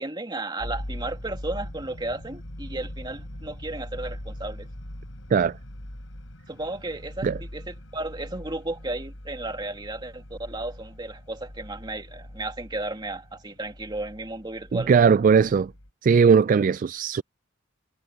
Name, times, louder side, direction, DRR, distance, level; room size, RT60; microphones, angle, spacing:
voice 1, 0.0-4.7 6.5-14.9, right 2 dB, 20° right, 2.5 m, -34 dB
sound 1, 0.6-15.9, left 1 dB, 85° left, 3.9 m, -41 dB
voice 2, 14.9-15.7 16.0-17.2, right 6 dB, 40° right, 0.3 m, -18 dB
head